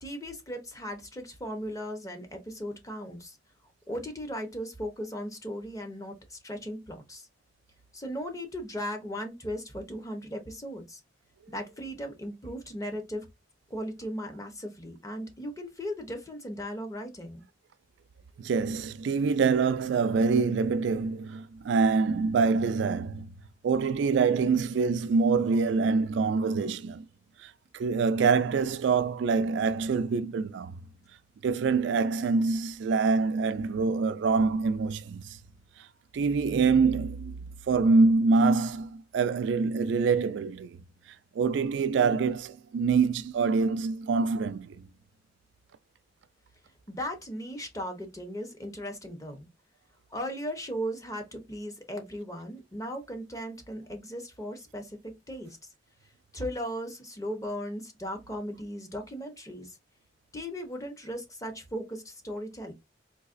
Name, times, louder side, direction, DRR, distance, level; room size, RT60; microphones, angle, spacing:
voice 1, 0.0-3.4 3.9-7.3 7.9-11.0 11.5-13.3 13.7-17.4 46.9-49.5 50.1-55.6 56.3-59.8 60.3-62.7, equal, 20° left, 0.8 m, -37 dB
voice 2, 18.4-23.3 23.6-27.1 27.4-30.8 31.4-35.2 36.1-37.3 37.7-40.8 41.4-44.9, right 4 dB, 65° right, 0.3 m, -25 dB
4.0 x 2.8 x 2.5 m
head